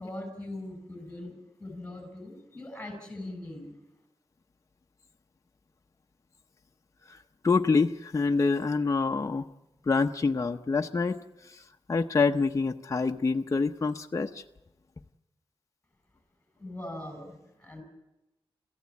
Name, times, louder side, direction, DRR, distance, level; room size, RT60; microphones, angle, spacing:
voice 1, 0.0-3.8 16.6-17.8, left 1 dB, 15° left, 7.2 m, -41 dB
voice 2, 7.4-9.5 9.9-11.2 11.5-11.6 11.9-14.4, left 4 dB, 35° left, 0.8 m, -26 dB
27.5 x 15.5 x 8.4 m
wide cardioid pair, 120°, 9 cm